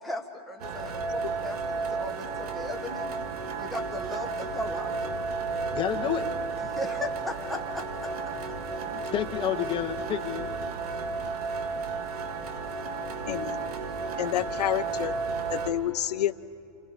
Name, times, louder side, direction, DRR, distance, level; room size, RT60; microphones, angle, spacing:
voice 1, 0.0-3.1 3.6-5.1 6.6-8.3, left 2 dB, ahead, -1 dB, 1.9 m, -37 dB
sound 1, 0.6-15.7, right 4 dB, 70° right, 2.2 m, -33 dB
voice 2, 5.7-6.2 8.8-10.5 11.1-11.3, left 11 dB, 25° left, 3 dB, 1.6 m, -30 dB
voice 3, 13.3-13.6 14.2-15.2 15.5-16.3, left 12 dB, 75° left, 14 dB, 0.8 m, -29 dB
29.0 x 27.5 x 5.3 m, 2.6 s
hypercardioid pair, 140°, 20 cm